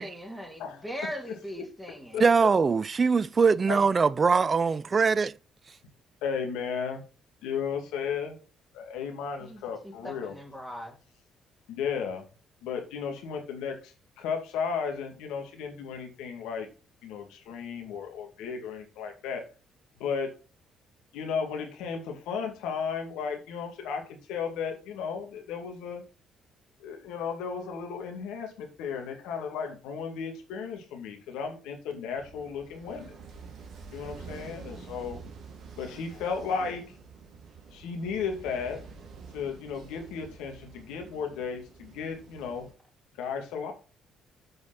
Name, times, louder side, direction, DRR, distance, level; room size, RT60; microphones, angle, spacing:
voice 1, 0.0-2.2 9.4-11.0, equal, 5° right, 3.3 m, -40 dB
voice 2, 2.2-5.3, right 5 dB, 40° right, 0.5 m, -22 dB
voice 3, 6.2-7.0 7.4-8.4 8.7-10.3 11.7-12.3 12.6-16.7 17.0-19.4 20.0-20.3 21.1-26.0 26.8-33.1 33.9-35.2 35.8-36.9 37.7-38.8 39.3-42.7 43.2-43.7, left 6 dB, 80° left, 2.4 m, -34 dB
sound 1, 32.1-42.7, right 5 dB, 60° right, 2.9 m, -47 dB
7.9 x 5.2 x 5.8 m
hypercardioid pair, 60°, 0 cm